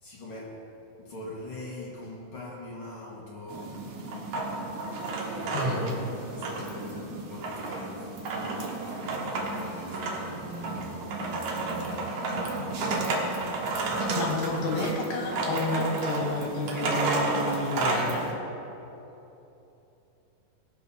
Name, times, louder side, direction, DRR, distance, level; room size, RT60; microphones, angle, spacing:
voice 1, 0.0-3.9 5.2-13.8, left 1 dB, 45° left, -3 dB, 2.0 m, -42 dB
sound 1, 3.5-18.3, right 3 dB, 65° right, 2.5 m, -32 dB
voice 2, 5.5-5.8 14.1-18.3, left 2 dB, 80° left, -1 dB, 4.0 m, -30 dB
18.5 x 7.6 x 5.6 m, 3.0 s
omnidirectional pair, 4.0 m